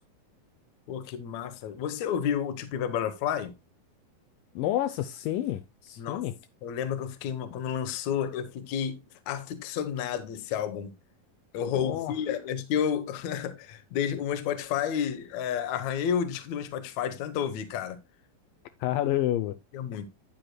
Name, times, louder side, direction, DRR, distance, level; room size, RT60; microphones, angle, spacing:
voice 1, 0.9-3.5 6.0-6.2 6.6-10.9 11.5-18.0 19.7-20.1, left 8 dB, 65° left, 2.1 m, -31 dB
voice 2, 4.6-6.3 11.7-12.1 18.8-19.6, left 13 dB, 80° left, 2.3 m, -29 dB
10.0 x 9.4 x 2.2 m
omnidirectional pair, 4.0 m